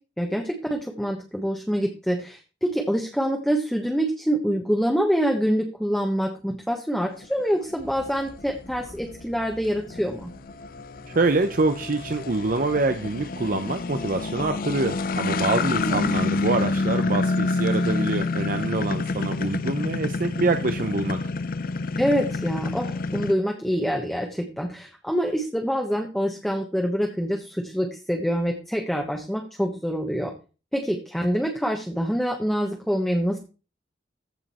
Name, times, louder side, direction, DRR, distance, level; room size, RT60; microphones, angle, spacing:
voice 1, 0.2-10.3 15.7-16.3 22.0-30.3 30.7-33.4, equal, ahead, 1 dB, 1.2 m, -26 dB
sound 1, 7.2-23.3, left 3 dB, 55° left, 0.5 m, -28 dB
sound 2, 7.8-16.1, equal, 70° right, 3.6 m, -48 dB
voice 2, 11.1-21.2, right 3 dB, 50° right, 7 dB, 0.7 m, -25 dB
15.0 x 5.1 x 4.3 m, 0.34 s
head